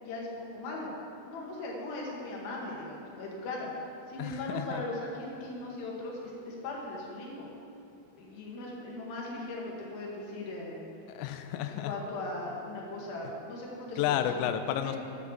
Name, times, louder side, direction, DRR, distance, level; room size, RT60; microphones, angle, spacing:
voice 1, 0.0-0.9 1.2-3.7 4.1-7.5 8.2-10.9 11.6-14.0 14.4-14.5 14.8-15.0, left 2 dB, 60° left, -3 dB, 3.1 m, -39 dB
voice 2, 4.2-4.8 11.1-11.9 14.0-15.0, left 10 dB, 90° left, 8 dB, 2.5 m, -31 dB
10.5 x 7.2 x 7.4 m, 2.8 s
omnidirectional pair, 5.6 m